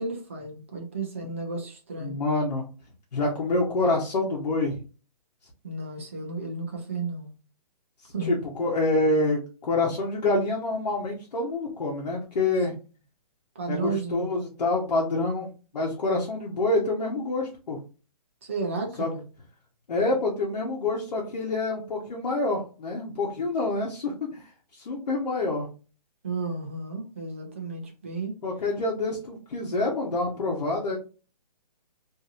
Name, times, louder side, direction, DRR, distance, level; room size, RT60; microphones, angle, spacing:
voice 1, 0.0-2.1 5.6-7.3 8.1-8.4 13.5-14.3 18.4-19.3 26.2-28.4, right 3 dB, 20° right, 1 dB, 0.4 m, -33 dB
voice 2, 2.0-2.7 3.1-4.8 8.0-12.7 13.7-15.5 15.7-17.8 19.0-19.1 19.9-25.7 28.4-31.0, left 2 dB, 85° left, -3 dB, 0.9 m, -27 dB
2.8 x 2.6 x 2.5 m, 0.35 s
hypercardioid pair, 175°, 21 cm